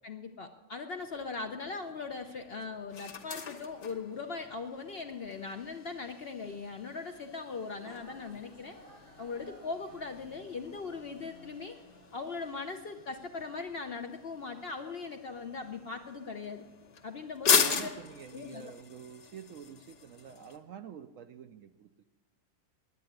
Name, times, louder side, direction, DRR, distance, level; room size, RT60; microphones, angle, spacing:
voice 1, 0.0-8.8 9.2-11.7 12.1-16.6 17.0-17.8 18.3-18.7, left 4 dB, 55° left, 5 dB, 0.7 m, -40 dB
sound 1, 1.0-20.6, left 6 dB, 80° left, 1.6 m, -38 dB
sound 2, 7.8-13.3, right 1 dB, 90° right, 3.3 m, -58 dB
voice 2, 17.7-22.0, right 8 dB, 65° right, 9 dB, 0.8 m, -48 dB
9.7 x 9.5 x 9.1 m, 1.3 s
omnidirectional pair, 1.7 m